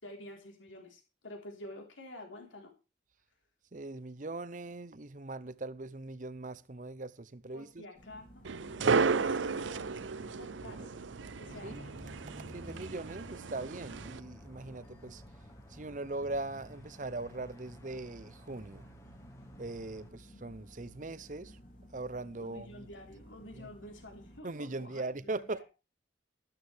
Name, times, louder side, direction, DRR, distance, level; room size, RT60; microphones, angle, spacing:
voice 1, 0.0-2.7 7.5-8.4 8.8-9.0 9.3-10.0 10.4-10.9 11.4-11.9 22.4-25.6, left 1 dB, 85° left, 4.0 m, -49 dB
voice 2, 3.7-7.8 8.8-9.2 11.6-11.8 12.5-15.2 15.7-18.9 19.6-21.6 21.9-22.9 23.6-23.7 24.4-25.6, right 2 dB, 40° right, 0.7 m, -40 dB
sound 1, 7.9-24.4, equal, 45° left, 3.5 m, -56 dB
sound 2, 8.4-14.2, right 5 dB, 80° right, 0.6 m, -33 dB
sound 3, 11.5-20.1, equal, 15° left, 1.5 m, -53 dB
13.5 x 13.0 x 3.5 m
head